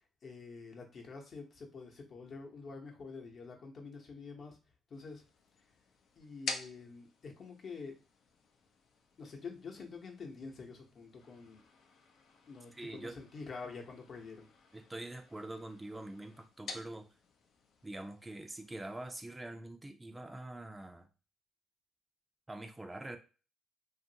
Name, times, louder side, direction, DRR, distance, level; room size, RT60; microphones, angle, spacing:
voice 1, 0.2-4.6 4.9-5.2 6.2-7.9 9.2-11.6 12.5-14.5, left 4 dB, 55° left, 0.8 m, -47 dB
sound 1, 4.9-19.3, left 4 dB, 75° left, 0.5 m, -50 dB
voice 2, 12.7-13.2 14.7-17.1 17.8-21.1 22.5-23.2, right 1 dB, 15° right, 0.4 m, -44 dB
2.8 x 2.5 x 2.7 m
cardioid pair, 90°, 0 cm